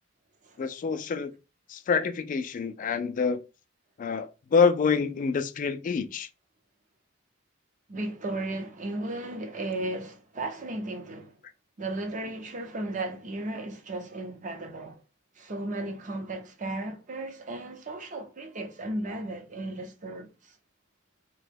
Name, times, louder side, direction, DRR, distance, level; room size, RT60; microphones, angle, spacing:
voice 1, 0.6-1.3 1.7-3.4 4.0-6.3, left 5 dB, 40° left, 0.3 m, -26 dB
voice 2, 7.9-11.4 11.8-15.0 15.3-20.6, right 2 dB, 40° right, 0.7 m, -35 dB
2.9 x 2.2 x 3.3 m
head